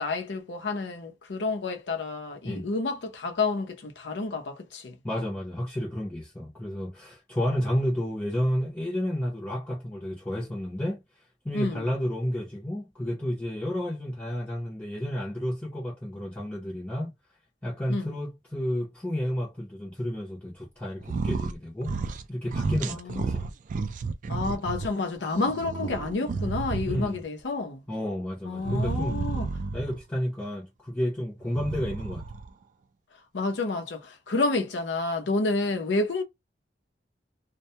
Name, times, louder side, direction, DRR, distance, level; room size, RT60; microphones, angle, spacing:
voice 1, 0.0-5.0 11.5-11.8 17.9-18.1 22.9-23.4 24.3-27.8 28.4-29.5 33.3-36.2, left 3 dB, 85° left, 0.6 m, -29 dB
voice 2, 5.0-11.0 11.4-17.1 17.6-22.0 22.3-23.5 26.9-27.2 27.9-32.2, equal, 10° left, 0.6 m, -31 dB
sound 1, 21.0-21.6 21.8-22.2 22.5-24.9 25.3-27.2 28.6-30.0 31.4-32.5, right 4 dB, 45° right, 0.3 m, -31 dB
2.2 x 2.1 x 2.7 m
head